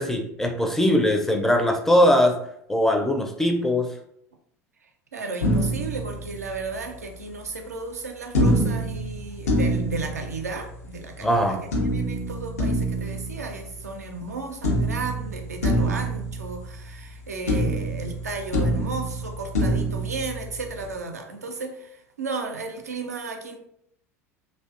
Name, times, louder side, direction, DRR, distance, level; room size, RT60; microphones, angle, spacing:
voice 1, 0.0-2.3 2.7-3.9 11.2-11.6, left 1 dB, 5° left, 3 dB, 0.4 m, -20 dB
voice 2, 4.8-23.6, right 3 dB, 90° right, 4 dB, 0.4 m, -34 dB
sound 1, 5.4-6.9 8.3-11.0 11.7-14.3 14.6-17.2 17.5-20.9, equal, 80° left, 0.5 m, -26 dB
2.5 x 2.1 x 2.4 m, 0.72 s
hypercardioid pair, 75°, 8 cm